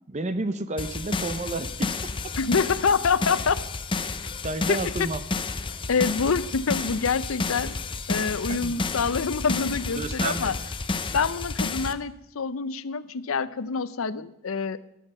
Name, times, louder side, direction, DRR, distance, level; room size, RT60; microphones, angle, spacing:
voice 1, 0.1-2.0 4.4-5.2 8.5-8.8 10.0-10.5, right 2 dB, 35° right, 11 dB, 0.6 m, -31 dB
sound 1, 0.8-11.9, left 3 dB, 25° left, 0.6 m, -31 dB
voice 2, 2.4-3.6 4.7-5.1 5.9-7.7 8.1-10.5 11.1-14.8, left 5 dB, 80° left, 16 dB, 0.6 m, -26 dB
14.0 x 11.0 x 5.5 m, 0.80 s
head